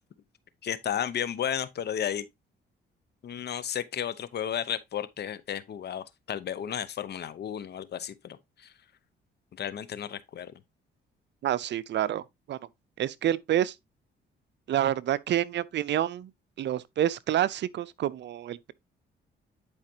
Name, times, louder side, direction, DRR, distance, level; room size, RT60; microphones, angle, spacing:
voice 1, 0.6-2.2 3.2-8.7 9.6-10.5, left 9 dB, 55° left, 0.9 m, -33 dB
voice 2, 11.4-12.6 13.0-13.7 14.7-16.3 16.6-18.7, right 11 dB, 60° right, 0.6 m, -28 dB
10.5 x 4.9 x 2.8 m
cardioid pair, 90°, 20 cm